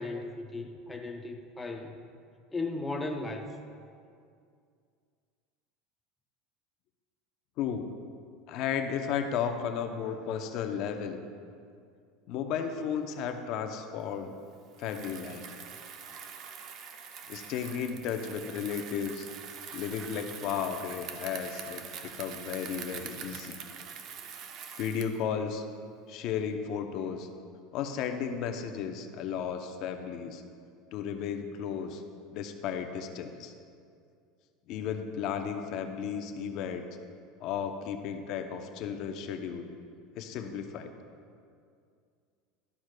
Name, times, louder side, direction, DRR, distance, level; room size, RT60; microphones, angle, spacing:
voice 1, 0.0-2.0 2.5-3.5, left 2 dB, 10° left, 2 dB, 0.5 m, -36 dB
voice 2, 7.6-7.9 8.5-11.2 12.3-14.4 14.8-15.5 17.3-19.3 19.7-23.6 24.8-25.7 26.1-27.3 27.7-30.4 30.9-32.0 32.3-33.5 34.7-36.9 37.4-39.7 40.2-40.9, left 7 dB, 50° left, 6 dB, 0.6 m, -34 dB
Bicycle, 14.7-25.2, right 7 dB, 45° right, 0.6 m, -44 dB
12.0 x 9.5 x 2.2 m, 2.3 s
supercardioid pair, 145°, 0 cm